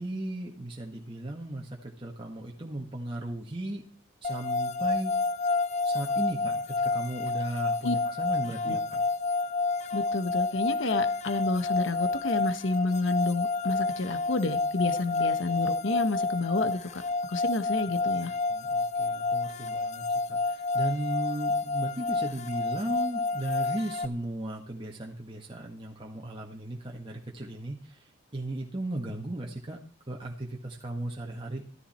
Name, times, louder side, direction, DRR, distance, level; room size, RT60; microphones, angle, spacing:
voice 1, 0.0-3.8 4.2-5.2 5.8-9.0 18.5-29.8 30.1-31.6, right 1 dB, 25° right, -1 dB, 1.6 m, -36 dB
sound 1, 4.2-24.1, left 3 dB, 35° left, 0.6 m, -29 dB
voice 2, 9.9-17.0 17.3-18.3, left 2 dB, 65° left, 11 dB, 1.2 m, -30 dB
14.0 x 13.5 x 4.4 m, 0.39 s
head